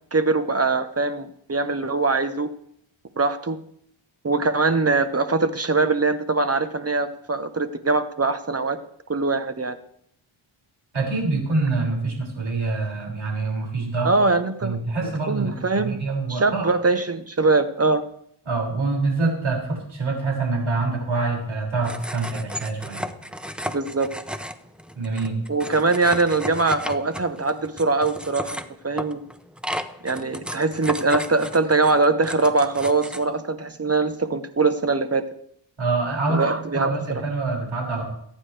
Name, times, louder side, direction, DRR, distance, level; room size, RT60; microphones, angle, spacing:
voice 1, 0.1-2.5 3.2-3.6 4.2-8.8 9.1-9.8 14.0-14.8 15.0-16.0 16.3-18.0 23.7-24.1 25.5-29.2 30.0-35.2 36.3-37.2, right 3 dB, 30° right, 10 dB, 1.0 m, -22 dB
voice 2, 10.9-14.1 14.6-16.7 18.5-23.1 24.9-25.3 35.8-36.4 36.7-38.0, right 3 dB, 70° right, -2 dB, 6.1 m, -25 dB
sound 1, 21.8-33.2, equal, ahead, 0.7 m, -34 dB
24.0 x 9.7 x 3.4 m, 0.69 s
wide cardioid pair, 95°, 49 cm